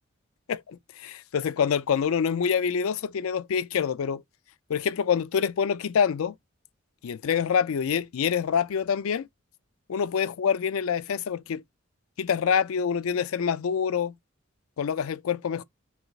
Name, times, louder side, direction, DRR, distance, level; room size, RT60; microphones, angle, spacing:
voice 1, 0.5-4.2 4.7-6.3 7.0-9.3 9.9-11.6 12.2-14.1 14.8-15.6, left 7 dB, 85° left, 0.4 m, -26 dB
4.8 x 2.4 x 3.9 m
head